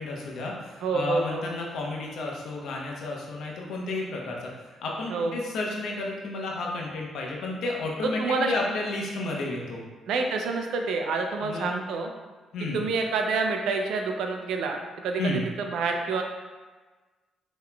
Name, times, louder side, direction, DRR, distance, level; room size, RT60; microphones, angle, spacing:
voice 1, 0.0-4.5 4.8-9.8 11.4-11.8 12.5-12.8 15.2-15.5, left 2 dB, 75° left, -1 dB, 0.8 m, -32 dB
voice 2, 0.8-1.4 5.1-5.4 8.0-8.5 10.1-12.1 12.7-15.3 15.6-16.2, right 4 dB, 80° right, 3 dB, 0.5 m, -27 dB
5.7 x 3.0 x 2.2 m, 1.3 s
cardioid pair, 90°, 0 cm